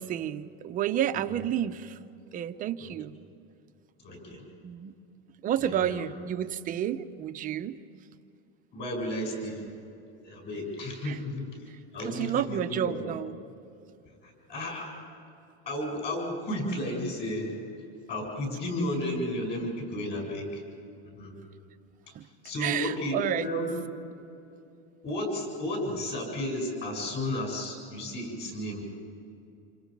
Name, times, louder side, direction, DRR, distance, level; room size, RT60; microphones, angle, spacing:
voice 1, 0.0-2.0 2.3-3.1 4.6-4.9 5.4-7.7 11.0-11.2 12.0-13.4 22.1-22.2 22.6-23.5, right 10 dB, 25° right, 10 dB, 0.6 m, -30 dB
voice 2, 1.1-1.5 2.8-2.9 4.0-4.4 5.6-6.0 8.7-9.7 10.2-11.5 11.9-13.0 14.2-14.9 15.7-17.5 18.1-20.6 21.0-21.3 22.4-23.7 25.0-28.8, left 1 dB, 30° left, 1 dB, 7.7 m, -33 dB
28.5 x 27.0 x 5.3 m, 2.6 s
supercardioid pair, 165°, 34 cm